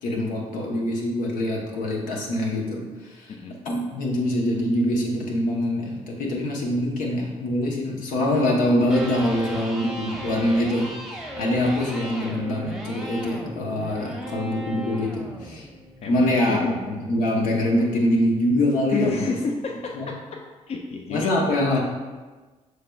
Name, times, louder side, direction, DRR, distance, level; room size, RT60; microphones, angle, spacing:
voice 1, 0.0-3.3 3.6-15.7 16.1-19.3 19.9-20.1 21.1-21.8, left 1 dB, 80° left, -1 dB, 0.8 m, -24 dB
Electric guitar, 8.8-16.8, equal, ahead, 0.8 m, -37 dB
voice 2, 16.0-16.7 18.9-20.2 20.7-21.3, left 5 dB, 50° left, 2 dB, 0.4 m, -29 dB
6.4 x 3.3 x 2.3 m, 1.3 s
supercardioid pair, 65°, 14 cm